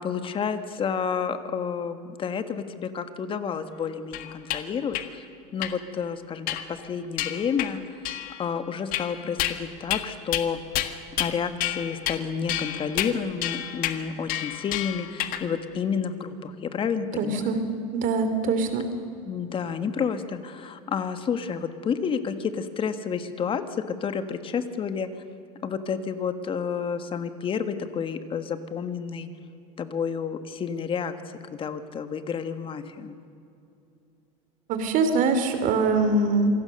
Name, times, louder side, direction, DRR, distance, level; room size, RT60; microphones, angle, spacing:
voice 1, 0.0-7.8 8.4-10.6 11.2-17.6 19.2-25.1 25.6-29.3 29.8-33.2, left 6 dB, 30° left, 10 dB, 1.5 m, -30 dB
sound 1, 4.1-4.6 4.9-5.1 5.6-5.8 6.5-6.8 7.2-7.7 8.1-8.5 8.9-9.6 9.9-10.1 10.3-10.5 10.7-11.3 11.6-12.2 12.5-15.5, left 13 dB, 50° left, 1.6 m, -30 dB
voice 2, 17.2-17.6 17.9-18.8 34.7-36.5, right 3 dB, 45° right, 8 dB, 3.2 m, -23 dB
26.5 x 18.0 x 6.6 m, 2.7 s
supercardioid pair, 125°, 18 cm